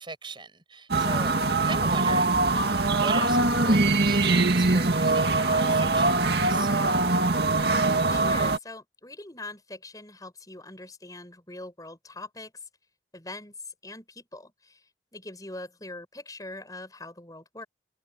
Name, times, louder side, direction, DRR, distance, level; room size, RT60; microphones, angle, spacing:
voice 1, 0.0-6.7, right 3 dB, 25° right, 7.2 m, -40 dB
sound 1, 0.9-8.6, right 2 dB, 65° right, 2.2 m, -22 dB
voice 2, 8.1-12.5 13.1-14.8 15.1-17.7, left 2 dB, 20° left, 7.4 m, -42 dB
head